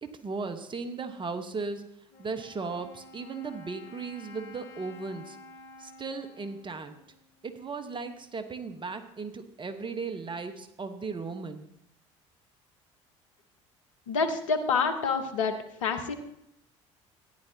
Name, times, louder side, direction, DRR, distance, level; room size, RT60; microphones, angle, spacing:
voice 1, 0.0-1.8 2.2-5.4 5.8-6.9 7.4-11.7, right 4 dB, 30° right, 9 dB, 1.2 m, -36 dB
Wind instrument woodwind instrument, 2.1-7.8, left 1 dB, 55° left, 4.0 m, -51 dB
voice 2, 14.1-16.2, left 5 dB, 80° left, 6 dB, 1.1 m, -28 dB
15.0 x 10.5 x 2.8 m, 0.78 s
hypercardioid pair, 60°, 16 cm